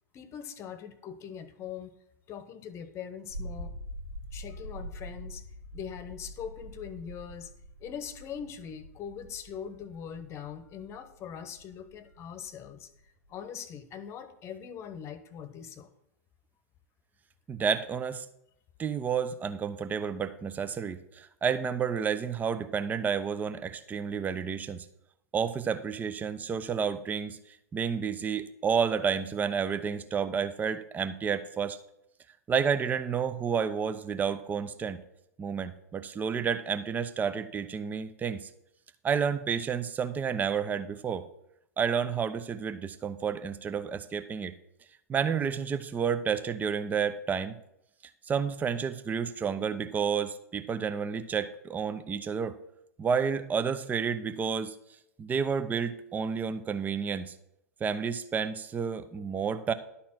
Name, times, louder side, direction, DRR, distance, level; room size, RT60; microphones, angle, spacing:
voice 1, 0.1-1.9 2.3-3.7 4.3-5.4 5.7-7.5 7.8-12.9 13.3-15.9, left 8 dB, 30° left, 13 dB, 1.0 m, -41 dB
sound 1, 3.3-13.4, equal, 85° right, 1.0 m, -44 dB
voice 2, 17.5-18.3 18.8-24.9 25.3-27.4 27.7-31.8 32.5-35.0 35.4-38.5 39.0-41.3 41.8-44.5 45.1-47.6 48.3-52.6 53.0-54.7 55.2-57.3 57.8-59.7, right 6 dB, 20° right, 11 dB, 0.7 m, -30 dB
11.0 x 4.3 x 7.4 m, 0.79 s
figure-of-eight pair, 95°, 9 cm